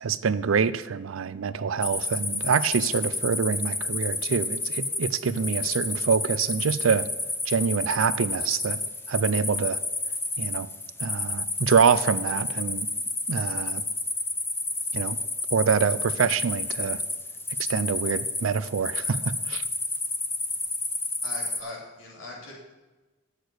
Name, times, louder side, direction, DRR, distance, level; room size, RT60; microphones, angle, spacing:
voice 1, 0.0-7.1 7.5-8.8 9.1-9.8 10.4-10.7 11.0-12.9 13.3-13.8 14.9-15.2 15.5-17.0 17.7-19.2 19.5-19.6, right 6 dB, 90° right, 16 dB, 0.5 m, -25 dB
sound 1, 1.8-21.6, left 3 dB, 10° left, 0.8 m, -30 dB
voice 2, 21.2-22.5, left 2 dB, 85° left, -3 dB, 3.0 m, -40 dB
8.1 x 6.6 x 8.0 m, 1.2 s
head